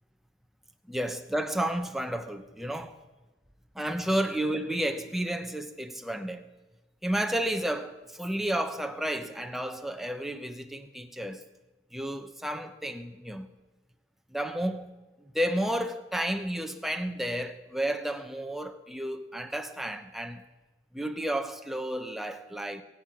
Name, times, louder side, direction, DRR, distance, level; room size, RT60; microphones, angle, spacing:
voice 1, 0.9-3.0 3.7-6.5 7.0-11.4 11.9-13.5 14.3-14.9 15.3-20.4 20.9-22.8, right 1 dB, ahead, 0.8 m, -31 dB
22.5 x 8.4 x 6.1 m
head